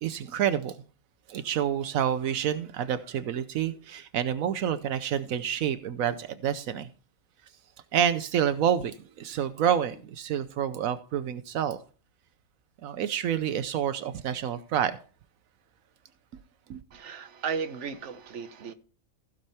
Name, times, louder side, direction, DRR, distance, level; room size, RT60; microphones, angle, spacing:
voice 1, 0.0-0.8 1.3-6.9 7.9-11.8 12.8-15.0 16.7-16.8, right 9 dB, 85° right, 1.1 m, -28 dB
voice 2, 16.9-18.7, right 6 dB, 60° right, 1.3 m, -35 dB
15.5 x 6.5 x 4.3 m
omnidirectional pair, 1.4 m